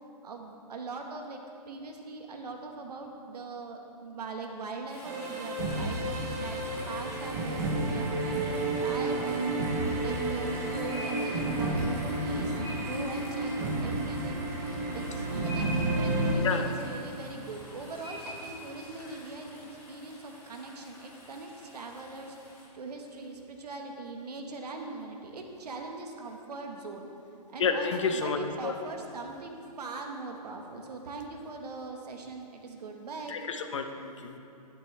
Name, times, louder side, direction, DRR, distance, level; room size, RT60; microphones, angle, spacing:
voice 1, 0.2-8.4 8.8-13.5 13.8-14.4 14.9-22.4 22.7-27.1 27.5-33.4, right 3 dB, 75° right, 3 dB, 1.4 m, -41 dB
sound 1, 4.9-22.6, left 1 dB, 10° left, 2.4 m, -46 dB
sound 2, 5.0-16.3, right 2 dB, 25° right, 0.8 m, -31 dB
voice 2, 27.6-28.7 33.3-34.4, left 5 dB, 50° left, 6 dB, 0.8 m, -30 dB
11.5 x 10.5 x 3.4 m, 2.7 s
hypercardioid pair, 170°, 21 cm